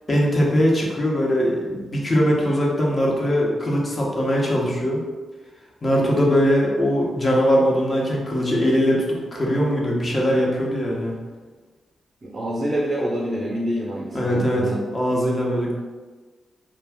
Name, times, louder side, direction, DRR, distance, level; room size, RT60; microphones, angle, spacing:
voice 1, 0.1-5.0 5.8-11.2 14.1-15.8, equal, 40° left, -3 dB, 0.9 m, -21 dB
voice 2, 12.2-14.8, equal, 40° right, -4 dB, 0.6 m, -26 dB
2.4 x 2.2 x 3.5 m, 1.3 s
supercardioid pair, 45°, 0 cm